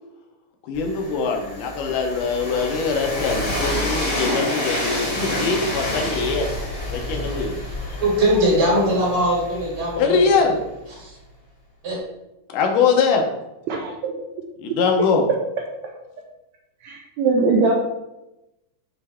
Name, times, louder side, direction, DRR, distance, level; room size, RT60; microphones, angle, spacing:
voice 1, 0.6-6.5 6.9-7.5 10.0-10.6 12.5-13.2 14.6-15.2, left 5 dB, 80° left, 3 dB, 2.5 m, -22 dB
Train, 0.7-10.6, left 1 dB, 25° left, 2.5 m, -28 dB
voice 2, 8.0-10.5 11.0-11.2 11.8-12.0, right 1 dB, 55° right, -5 dB, 3.6 m, -21 dB
voice 3, 13.7-14.5 15.3-15.4 15.8-16.2 16.8-17.7, right 4 dB, 75° right, 0 dB, 1.8 m, -22 dB
8.7 x 3.3 x 4.3 m, 0.92 s
omnidirectional pair, 3.7 m